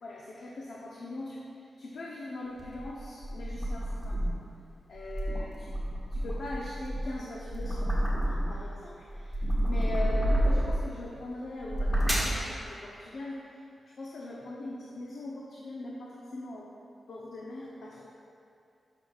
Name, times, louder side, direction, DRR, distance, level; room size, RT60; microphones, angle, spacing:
voice 1, 0.0-4.3 4.9-5.7 6.1-13.6 14.0-16.7 17.1-18.1, left 2 dB, 80° left, -4 dB, 0.8 m, -41 dB
sound 1, 2.6-4.5 4.9-8.7 9.1-10.9 11.6-12.4, equal, ahead, 1.6 m, -29 dB
12.5 x 6.2 x 2.4 m, 2.5 s
wide cardioid pair, 115°, 0 cm